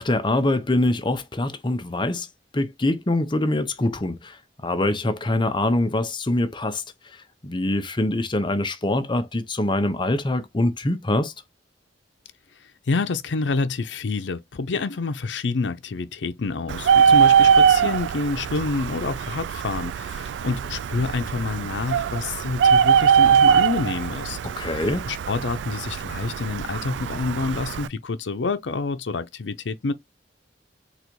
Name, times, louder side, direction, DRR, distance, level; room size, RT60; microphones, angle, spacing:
voice 1, 0.0-2.3 2.5-4.4 4.6-6.8 7.4-11.3 24.6-25.1, left 1 dB, 25° left, 0.7 m, -24 dB
voice 2, 12.9-29.9, left 3 dB, 80° left, 0.5 m, -28 dB
Bird, 16.7-27.9, right 7 dB, 75° right, 0.3 m, -21 dB
4.0 x 2.4 x 4.5 m
head